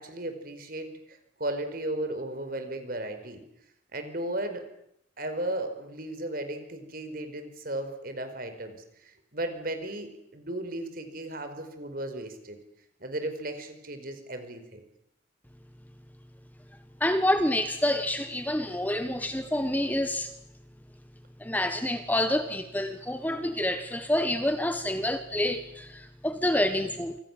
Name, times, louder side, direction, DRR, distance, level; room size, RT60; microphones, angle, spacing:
voice 1, 0.0-3.4 3.9-4.6 5.2-8.8 9.0-12.6 13.0-14.8, right 1 dB, 50° right, 8 dB, 4.8 m, -35 dB
voice 2, 17.0-20.3 21.4-27.2, left 1 dB, 10° left, 9 dB, 1.3 m, -28 dB
27.5 x 26.5 x 7.4 m, 0.76 s
head